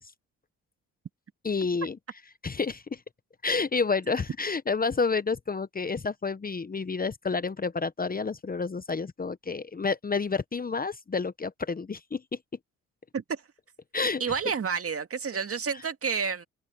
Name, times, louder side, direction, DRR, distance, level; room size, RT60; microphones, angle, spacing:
voice 1, 1.4-2.0 2.4-3.0 3.4-12.2 13.9-14.2, left 4 dB, 25° left, 1.0 m, -29 dB
voice 2, 14.2-16.4, right 6 dB, 40° right, 2.2 m, -30 dB
open air
supercardioid pair, 60°, 34 cm